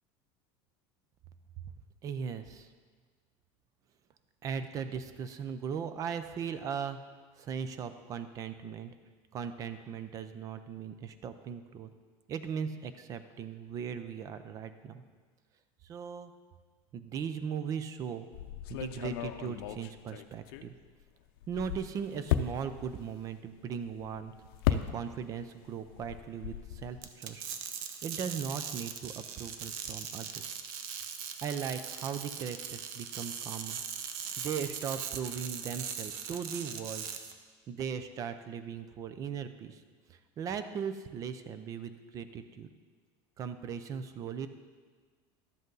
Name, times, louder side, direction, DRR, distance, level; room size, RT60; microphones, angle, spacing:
voice 1, 2.0-2.7 4.4-7.0 7.4-8.9 9.3-11.9 12.3-15.0 15.8-16.3 16.9-18.3 18.7-20.7 21.5-24.3 24.7-27.5 28.0-30.5 31.4-33.8 34.4-37.1 37.7-39.8 40.1-42.7 43.4-44.5, right 7 dB, 30° right, 11 dB, 0.5 m, -38 dB
sound 1, 18.3-21.0 21.4-25.4 25.7-27.0, left 11 dB, 85° left, 0.6 m, -35 dB
sound 2, 27.0-37.3, right 8 dB, 70° right, 0.8 m, -40 dB
12.0 x 7.9 x 3.9 m, 1.5 s
cardioid pair, 160°, 12 cm